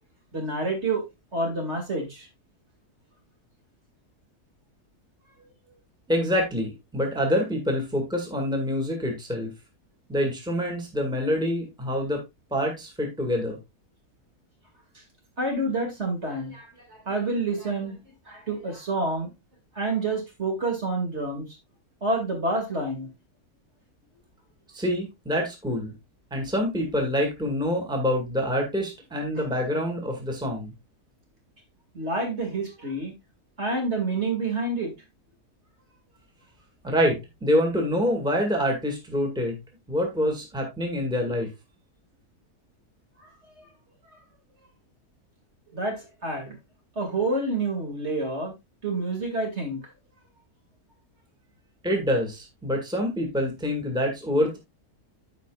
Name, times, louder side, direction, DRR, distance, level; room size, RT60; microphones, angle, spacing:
voice 1, 0.3-1.0 1.3-2.3 15.4-18.0 18.3-19.3 19.8-21.4 22.0-23.1 31.9-33.1 33.6-34.9 45.7-46.6 47.0-48.5 48.8-49.8, right 2 dB, 45° right, 2.6 m, -28 dB
voice 2, 6.1-9.5 10.1-12.2 12.5-13.6 24.7-25.9 26.3-30.7 36.8-39.6 39.9-41.5 51.8-54.6, equal, 5° right, 1.9 m, -26 dB
14.0 x 5.2 x 2.3 m
omnidirectional pair, 1.6 m